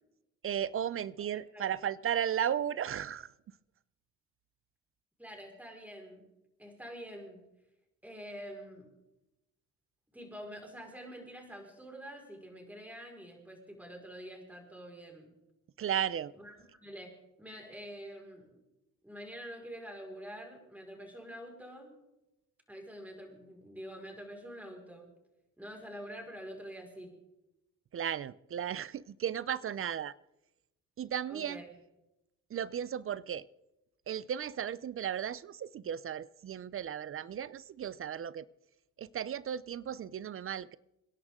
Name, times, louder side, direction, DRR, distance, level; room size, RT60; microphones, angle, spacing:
voice 1, 0.4-3.3 15.8-16.3 27.9-30.1 31.0-31.6 32.5-33.5 34.1-38.5 39.0-40.8, right 9 dB, 45° right, 0.5 m, -35 dB
voice 2, 1.3-1.8 5.2-6.3 6.6-7.4 8.0-8.9 10.1-15.3 16.3-18.6 19.0-21.9 22.7-25.1 25.6-27.1 31.3-31.7, equal, 5° right, 5.0 m, -47 dB
27.0 x 11.0 x 3.7 m
cardioid pair, 90°, 30 cm